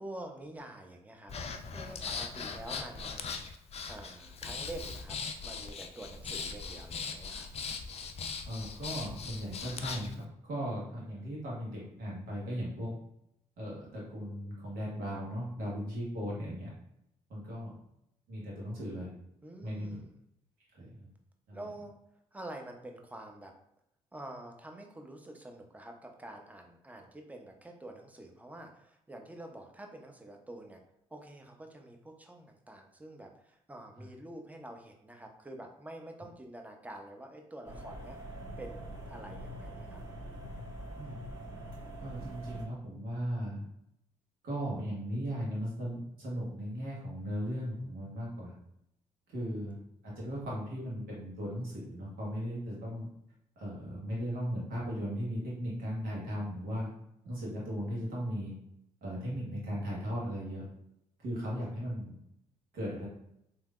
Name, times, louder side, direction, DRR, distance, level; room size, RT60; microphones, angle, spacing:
voice 1, 0.0-3.4 3.9-7.5 19.4-20.2 21.5-21.9 22.3-23.5 24.1-30.8 31.1-38.2 38.6-40.0 49.5-49.6, right 1 dB, 10° right, 3 dB, 0.6 m, -47 dB
Breathing, 1.3-10.1, left 5 dB, 45° left, 0.4 m, -40 dB
voice 2, 8.5-13.0 13.6-16.7 17.3-17.8 18.3-19.1 19.6-19.9 20.8-21.1 21.5-21.6 34.0-34.1 41.0-41.2 42.0-43.6 44.4-48.5 49.3-49.8 50.0-53.1 53.6-56.9 57.2-58.5 59.0-60.6 61.2-62.1 62.7-63.1, equal, 75° right, -5 dB, 1.3 m, -37 dB
sound 1, 37.6-42.6, right 1 dB, 25° right, 1.4 m, -44 dB
3.3 x 2.8 x 2.4 m, 0.78 s
supercardioid pair, 55°, 15 cm